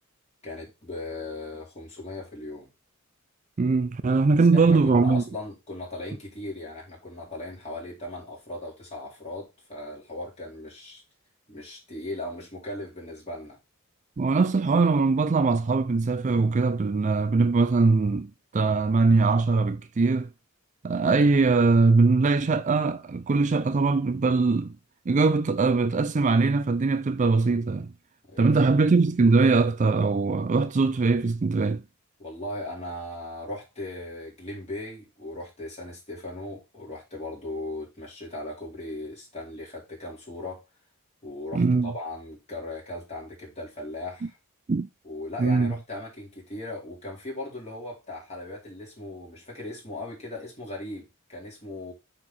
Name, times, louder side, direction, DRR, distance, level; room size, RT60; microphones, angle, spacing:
voice 1, 0.4-2.7 4.5-11.0 11.5-13.6 28.3-28.9 32.2-40.6 41.2-44.4 45.0-51.9, left 1 dB, 30° left, 3.9 m, -38 dB
voice 2, 3.6-5.2 14.2-20.3 20.8-24.8 25.1-27.9 28.4-31.8 41.5-41.9 44.7-44.9 45.4-45.7, right 3 dB, 35° right, 0.4 m, -21 dB
8.6 x 4.5 x 4.1 m
head